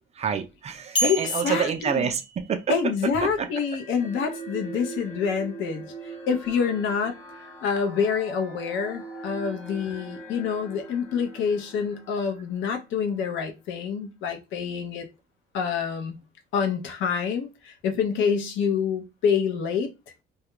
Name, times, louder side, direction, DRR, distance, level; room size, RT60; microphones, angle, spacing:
voice 1, 0.1-2.8 3.2-3.5, right 7 dB, 35° right, 0.4 m, -27 dB
sound 1, 1.0-3.0, right 1 dB, 25° left, 0.5 m, -31 dB
voice 2, 1.4-2.1 2.7-5.9 6.3-7.2 7.6-15.1 15.5-16.2 16.5-19.9, left 6 dB, 80° left, 0.6 m, -27 dB
sound 2, 3.5-13.0, right 2 dB, 10° left, 1.0 m, -42 dB
2.3 x 2.1 x 2.9 m
cardioid pair, 140°, 20 cm